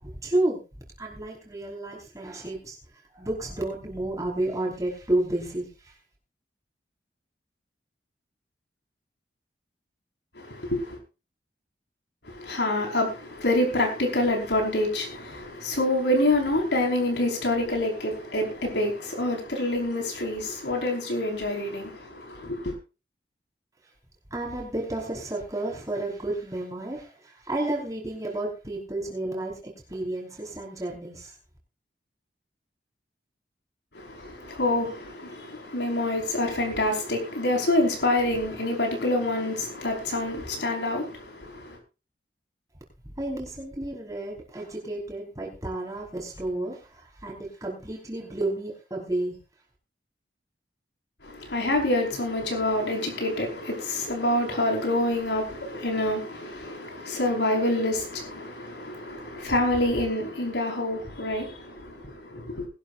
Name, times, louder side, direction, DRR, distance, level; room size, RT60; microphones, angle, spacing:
voice 1, 0.0-2.8 3.1-5.9 24.3-31.3 43.0-49.4, right 1 dB, 20° right, 4.9 m, -31 dB
voice 2, 10.3-11.0 12.2-22.7 33.9-41.8 51.2-62.7, left 1 dB, 80° left, 5.1 m, -27 dB
21.0 x 12.0 x 2.6 m
head